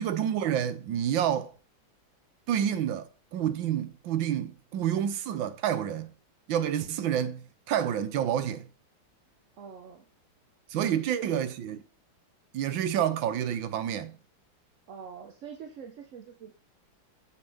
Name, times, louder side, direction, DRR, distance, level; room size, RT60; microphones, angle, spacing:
voice 1, 0.0-1.5 2.5-6.1 6.5-7.4 7.7-8.7 10.7-11.8 12.5-14.2, right 10 dB, 80° right, 1.6 m, -28 dB
voice 2, 9.6-10.1 10.7-11.3 14.9-16.5, right 6 dB, 60° right, 0.8 m, -43 dB
7.2 x 6.8 x 3.5 m
omnidirectional pair, 2.1 m